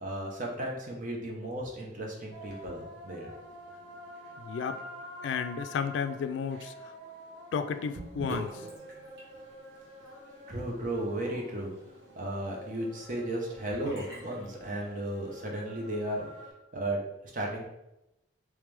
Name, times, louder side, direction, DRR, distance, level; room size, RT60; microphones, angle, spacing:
voice 1, 0.0-3.3 10.5-11.7 12.2-16.2 16.7-17.0 17.3-17.6, right 1 dB, 45° right, -1 dB, 0.9 m, -34 dB
sound 1, 2.3-16.5, equal, 85° right, 0.9 m, -48 dB
voice 2, 4.4-4.8 5.2-6.7 7.5-8.6, left 6 dB, 85° left, 10 dB, 0.3 m, -32 dB
Sink (filling or washing) / Bathtub (filling or washing), 7.9-15.2, right 1 dB, 65° right, 1.5 m, -47 dB
3.4 x 3.2 x 3.3 m, 0.89 s
head